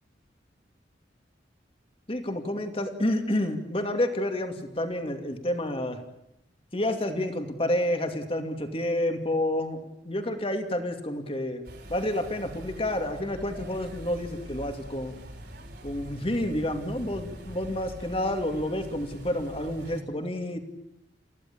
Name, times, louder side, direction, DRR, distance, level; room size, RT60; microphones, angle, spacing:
voice 1, 2.1-6.0 6.7-11.6 11.9-15.2 15.8-20.6, left 1 dB, 30° left, 6 dB, 2.5 m, -29 dB
sound 1, 11.6-20.0, right 1 dB, 60° right, 5.6 m, -44 dB
29.0 x 15.5 x 8.7 m, 0.85 s
head